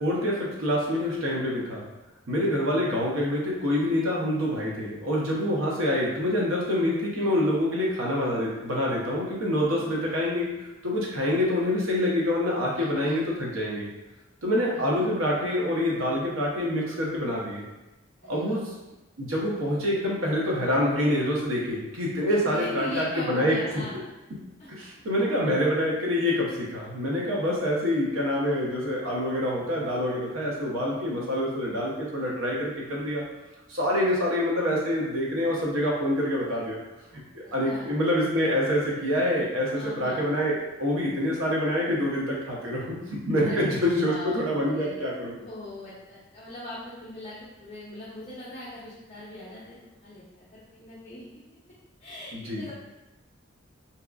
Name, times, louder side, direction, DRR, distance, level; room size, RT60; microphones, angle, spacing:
voice 1, 0.0-1.9 2.3-13.9 14.4-17.6 18.3-18.6 19.2-23.6 24.7-33.2 33.7-36.8 37.1-40.5 40.8-45.3 52.3-52.7, left 1 dB, 90° right, -3 dB, 0.7 m, -26 dB
voice 2, 12.7-13.2 14.7-15.4 18.2-18.6 22.3-24.0 24.6-24.7 37.4-37.9 39.7-40.2 43.4-44.4 44.7-45.0 45.4-49.8 50.0-51.4 52.0-52.7, left 1 dB, 35° left, -9 dB, 0.5 m, -40 dB
2.7 x 2.3 x 2.3 m, 1.0 s
head